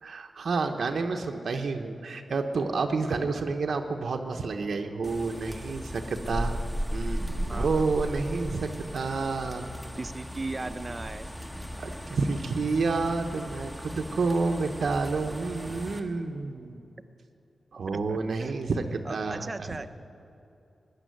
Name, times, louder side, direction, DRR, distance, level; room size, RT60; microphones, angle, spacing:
voice 1, 0.0-6.5 6.9-9.7 11.8-16.9 17.7-19.7, right 4 dB, 75° right, 4 dB, 0.8 m, -29 dB
sound 1, 5.0-16.0, equal, 10° left, 1.6 m, -36 dB
voice 2, 7.5-7.8 10.0-11.3 17.9-18.5 19.0-19.9, right 2 dB, 30° right, 11 dB, 0.8 m, -37 dB
15.0 x 10.0 x 9.3 m, 2.8 s
cardioid pair, 65°, 0 cm